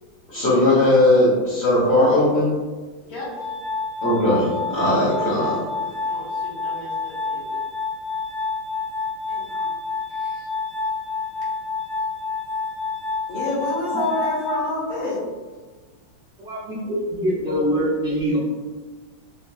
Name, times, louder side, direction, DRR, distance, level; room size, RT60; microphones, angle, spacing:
voice 1, 0.3-2.6 4.0-5.6, left 1 dB, 45° left, -11 dB, 1.0 m, -18 dB
voice 2, 3.0-3.5 6.1-7.5 9.3-9.7 10.1-10.5 13.3-15.2 16.7-17.6, left 1 dB, 80° left, -6 dB, 1.8 m, -30 dB
Glass, 3.3-15.3, left 4 dB, 65° right, 1.3 m, -29 dB
voice 3, 16.4-18.5, equal, 90° right, -9 dB, 0.5 m, -24 dB
3.9 x 2.5 x 2.3 m, 1.3 s
omnidirectional pair, 2.2 m